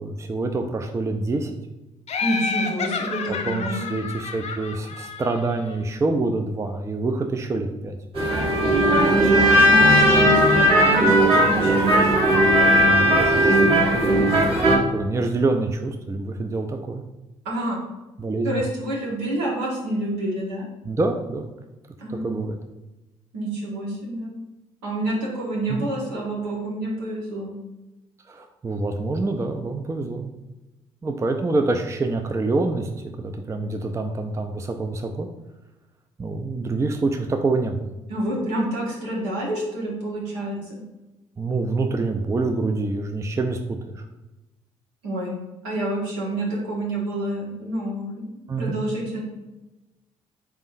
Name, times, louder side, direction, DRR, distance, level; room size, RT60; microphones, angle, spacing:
voice 1, 0.0-1.6 3.4-8.0 12.8-17.0 18.2-18.6 20.8-21.5 22.1-22.6 25.7-25.9 28.3-30.3 31.0-32.9 33.2-35.3 36.2-37.9 41.4-44.0 48.5-48.8, right 3 dB, 20° right, 4 dB, 0.4 m, -26 dB
Laughter, 2.1-5.7, left 4 dB, 40° left, 0.5 m, -30 dB
voice 2, 2.2-3.9 8.8-12.1 17.4-17.8 18.4-20.7 22.0-22.4 23.3-24.3 24.8-27.5 38.1-40.8 45.0-45.3 45.6-49.2, right 1 dB, 75° right, -4 dB, 1.3 m, -28 dB
sound 1, 8.1-14.8, equal, 35° right, 1.5 m, -17 dB
4.3 x 3.5 x 2.6 m, 1.1 s
figure-of-eight pair, 45°, 16 cm